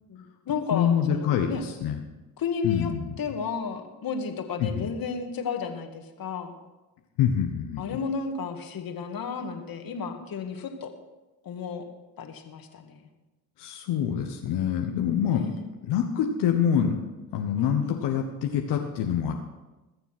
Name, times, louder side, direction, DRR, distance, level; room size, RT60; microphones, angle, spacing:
voice 1, 0.1-1.6 2.4-2.9 3.2-6.5 7.8-10.9 11.4-11.8 12.2-13.0 15.3-15.7 17.6-18.0, left 5 dB, 60° left, 5 dB, 2.0 m, -33 dB
voice 2, 0.7-2.0 2.6-3.1 4.6-4.9 7.2-8.0 13.6-15.5 15.8-17.0 17.3-19.3, left 8 dB, 85° left, 2 dB, 1.2 m, -26 dB
21.0 x 7.1 x 6.1 m, 1.1 s
supercardioid pair, 70°, 40 cm